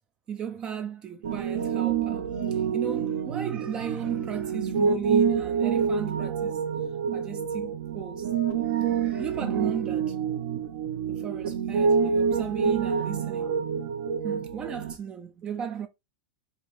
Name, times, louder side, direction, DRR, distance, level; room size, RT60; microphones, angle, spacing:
voice 1, 0.3-6.6 7.1-8.3 8.6-10.2 11.1-13.6 14.2-15.9, right 8 dB, 20° right, 0.4 m, -35 dB
Piano, 1.2-14.9, right 6 dB, 65° right, 0.9 m, -27 dB
4.8 x 2.6 x 3.4 m
supercardioid pair, 165°, 5 cm